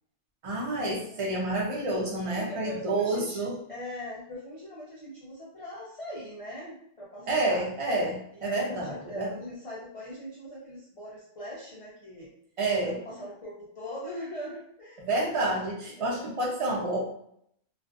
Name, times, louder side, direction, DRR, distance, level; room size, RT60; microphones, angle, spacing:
voice 1, 0.4-3.5 7.3-9.3 12.6-13.0 15.0-17.1, right 2 dB, 40° right, -2 dB, 0.5 m, -29 dB
voice 2, 2.3-7.6 8.3-12.3 12.8-15.1 16.0-16.3, left 1 dB, 60° left, -6 dB, 0.3 m, -41 dB
2.4 x 2.4 x 2.4 m, 0.70 s
omnidirectional pair, 1.3 m